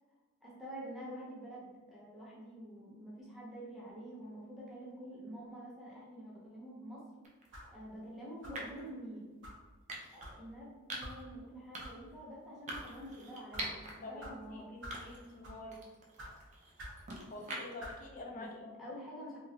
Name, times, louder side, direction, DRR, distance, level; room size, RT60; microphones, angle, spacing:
voice 1, 0.4-7.0 7.7-9.2 10.1-14.7 18.3-19.4, equal, ahead, -8 dB, 0.7 m, -47 dB
sound 1, 7.2-7.5 8.5-8.9 9.9-10.3 10.9-11.2 11.7-12.1 12.7-13.9 14.4-14.5 14.9-15.4 15.7-17.9, right 1 dB, 30° right, 0.5 m, -44 dB
sound 2, 7.5-7.8 8.4-8.7 9.4-9.6 10.2-10.4 11.0-11.2 11.8-11.9 12.5-12.9 13.5-13.7 14.2-14.3 14.8-15.0 15.4-15.7 16.2-16.3 16.8-17.0 17.8-18.0, equal, 55° right, 0.8 m, -47 dB
voice 2, 14.0-15.8 17.3-18.7, left 2 dB, 35° left, 1 dB, 0.4 m, -47 dB
3.0 x 2.4 x 2.8 m, 1.3 s
head